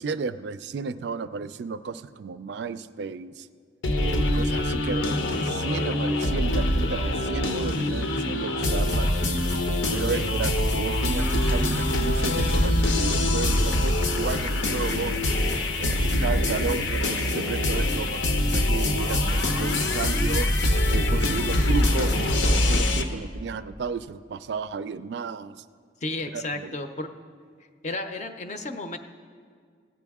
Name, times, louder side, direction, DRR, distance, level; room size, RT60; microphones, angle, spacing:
voice 1, 0.0-3.5 4.0-9.1 9.9-15.2 15.8-20.5 20.9-25.6 26.3-26.8, right 5 dB, 70° right, 14 dB, 0.3 m, -33 dB
sound 1, 3.8-23.0, left 1 dB, 90° left, 0.8 m, -24 dB
voice 2, 26.0-27.1 27.8-29.0, left 2 dB, 40° left, 7 dB, 0.5 m, -33 dB
16.0 x 9.1 x 3.5 m, 2.1 s
head